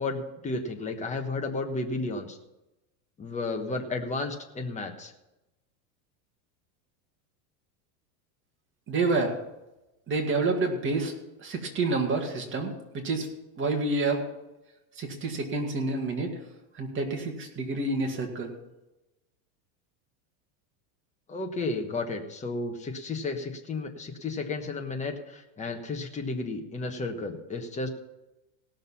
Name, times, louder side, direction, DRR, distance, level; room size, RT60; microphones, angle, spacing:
voice 1, 0.0-2.4 3.2-5.1 21.3-27.9, left 3 dB, 15° left, 3 dB, 1.3 m, -33 dB
voice 2, 8.9-9.3 10.1-11.1 11.4-13.3 13.6-14.2 15.0-16.3 16.8-18.5, right 3 dB, 25° right, 2 dB, 2.1 m, -28 dB
17.5 x 6.6 x 5.6 m, 0.97 s
supercardioid pair, 145°, 44 cm